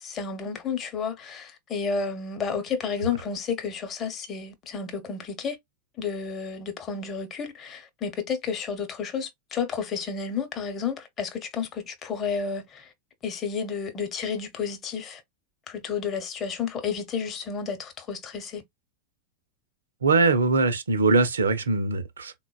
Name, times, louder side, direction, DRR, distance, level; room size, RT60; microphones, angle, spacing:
voice 1, 0.0-5.6 6.0-12.8 13.2-15.2 15.7-18.6, left 6 dB, 30° left, 0.9 m, -31 dB
voice 2, 20.0-22.3, right 3 dB, 70° right, 0.6 m, -22 dB
3.8 x 2.1 x 2.3 m
figure-of-eight pair, 90°, 0 cm